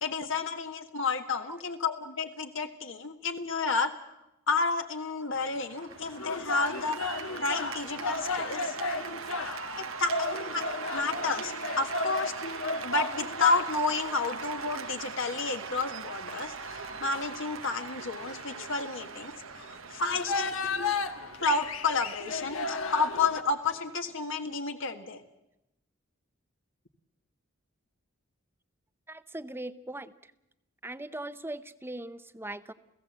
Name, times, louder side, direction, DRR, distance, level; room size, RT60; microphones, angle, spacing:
voice 1, 0.0-3.9 4.5-8.7 9.8-12.3 12.8-20.9 21.4-25.2, left 4 dB, 70° left, 5 dB, 1.6 m, -31 dB
Cheering / Applause, 5.3-24.6, right 7 dB, 75° right, 0.8 m, -42 dB
sound 1, 5.9-23.4, left 3 dB, 90° left, 1.3 m, -35 dB
voice 2, 29.1-30.3 30.8-32.7, right 1 dB, 10° right, 12 dB, 0.7 m, -40 dB
29.5 x 16.0 x 8.0 m, 0.92 s
head